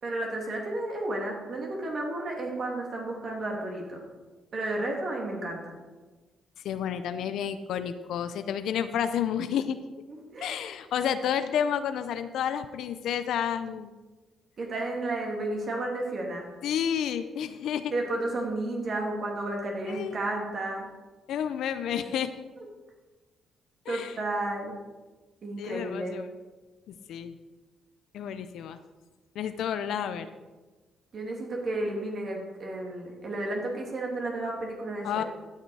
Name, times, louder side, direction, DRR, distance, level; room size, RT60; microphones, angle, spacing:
voice 1, 0.0-4.0 4.5-5.8 10.3-10.6 14.6-16.5 17.9-20.9 22.6-22.7 23.9-24.7 25.4-26.2 31.1-35.2, right 2 dB, 50° right, 0 dB, 2.3 m, -32 dB
voice 2, 6.6-9.8 10.4-13.9 16.6-17.9 19.8-20.2 21.3-22.4 23.9-24.2 25.6-26.2 26.9-27.4 28.1-28.8 29.4-30.3 35.0-35.2, left 8 dB, 75° left, 11 dB, 0.5 m, -30 dB
12.0 x 6.7 x 4.8 m, 1.3 s
cardioid pair, 90°, 0 cm